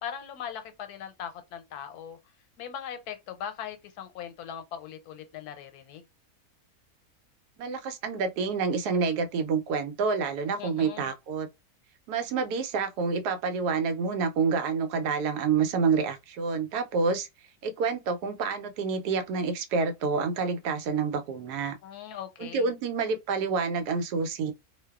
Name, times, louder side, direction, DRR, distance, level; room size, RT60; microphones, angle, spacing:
voice 1, 0.0-2.2 2.6-6.0 10.6-11.1 21.8-22.7, left 9 dB, 90° left, 1.1 m, -40 dB
voice 2, 7.6-11.5 12.1-17.3 17.6-21.7 22.4-24.5, right 5 dB, 90° right, 1.1 m, -28 dB
2.5 x 2.2 x 2.2 m
omnidirectional pair, 1.6 m